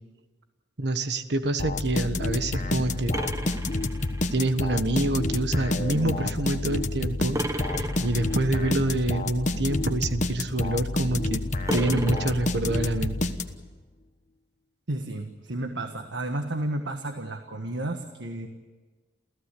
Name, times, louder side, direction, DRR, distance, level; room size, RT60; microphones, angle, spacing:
voice 1, 0.8-3.2 4.3-11.4 11.7-13.2, right 2 dB, 65° right, 10 dB, 1.4 m, -27 dB
sound 1, 1.6-13.8, left 2 dB, 40° left, 1.2 m, -29 dB
sound 2, 3.1-4.5 7.3-8.5 11.7-13.0, right 1 dB, 20° right, 1.2 m, -33 dB
voice 2, 14.9-18.5, right 1 dB, 80° right, 6 dB, 1.5 m, -32 dB
28.5 x 15.5 x 8.5 m, 1.4 s
head